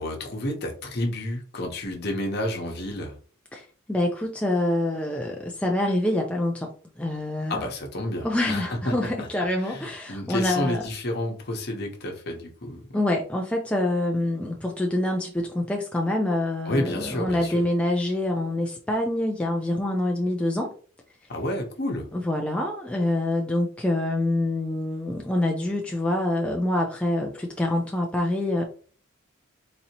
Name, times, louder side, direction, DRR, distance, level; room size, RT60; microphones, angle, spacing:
voice 1, 0.0-3.1 7.5-8.9 9.2-9.3 9.6-12.8 16.6-17.6 21.3-22.1, left 1 dB, 50° left, 2 dB, 0.9 m, -30 dB
voice 2, 3.5-7.7 8.2-10.8 12.9-20.7 22.1-28.6, left 1 dB, 5° left, 0 dB, 0.4 m, -26 dB
4.0 x 2.8 x 2.8 m, 0.41 s
head